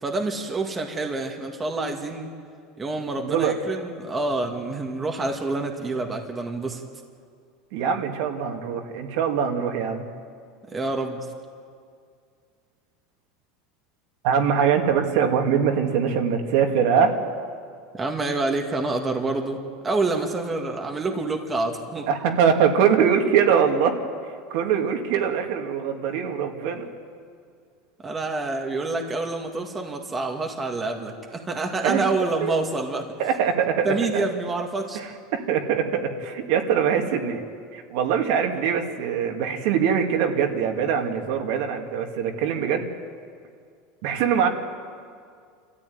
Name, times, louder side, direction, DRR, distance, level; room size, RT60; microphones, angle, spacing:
voice 1, 0.0-2.3 2.8-6.8 10.7-11.3 17.9-22.1 28.0-33.1 33.8-35.0, right 3 dB, 15° right, 2 dB, 1.8 m, -27 dB
voice 2, 7.7-10.1 14.2-17.2 22.1-24.0 24.5-26.9 31.8-32.0 32.4-32.5 33.2-34.3 34.9-37.4 37.7-42.9 44.0-44.5, right 7 dB, 65° right, 3 dB, 2.3 m, -23 dB
27.5 x 13.5 x 9.4 m, 2.2 s
supercardioid pair, 150°, 0 cm